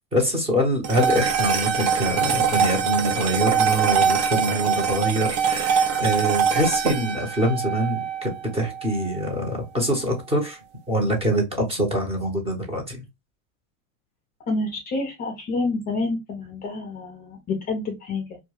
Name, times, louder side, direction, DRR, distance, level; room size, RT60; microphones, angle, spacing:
voice 1, 0.0-10.6 10.9-13.0, equal, 15° right, 1 dB, 0.9 m, -25 dB
sound 1, 0.8-9.4, right 7 dB, 50° right, 0.7 m, -23 dB
voice 2, 14.5-18.4, left 3 dB, 25° left, 2 dB, 0.5 m, -28 dB
2.3 x 2.1 x 3.1 m, 0.22 s
supercardioid pair, 125°, 41 cm